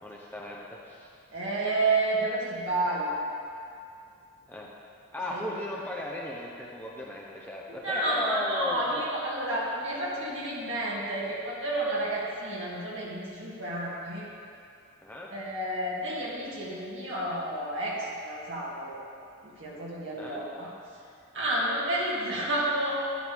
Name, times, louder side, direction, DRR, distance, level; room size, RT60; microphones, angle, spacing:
voice 1, 0.0-1.1 4.5-4.7 5.1-9.0 15.0-15.3 20.2-20.4, left 1 dB, 10° left, -3 dB, 0.7 m, -36 dB
voice 2, 1.3-3.1 5.3-5.4 7.7-14.3 15.3-19.0 19.6-20.7 21.3-23.0, right 2 dB, 55° right, -6 dB, 2.3 m, -30 dB
11.0 x 10.5 x 3.5 m, 2.5 s
head